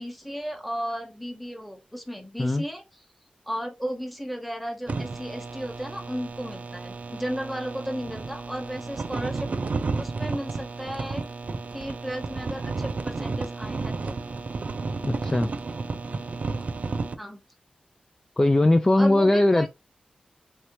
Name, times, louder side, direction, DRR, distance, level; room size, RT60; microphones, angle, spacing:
voice 1, 0.0-3.0 3.5-9.5 10.0-11.2 11.7-14.2 17.2-17.4 19.0-19.7, equal, ahead, 1.0 m, -34 dB
sound 1, 4.9-17.1, right 3 dB, 60° right, 0.4 m, -32 dB
voice 2, 15.0-15.5 18.4-19.7, left 1 dB, 20° left, 0.3 m, -20 dB
3.1 x 2.8 x 3.0 m
cardioid pair, 50°, 3 cm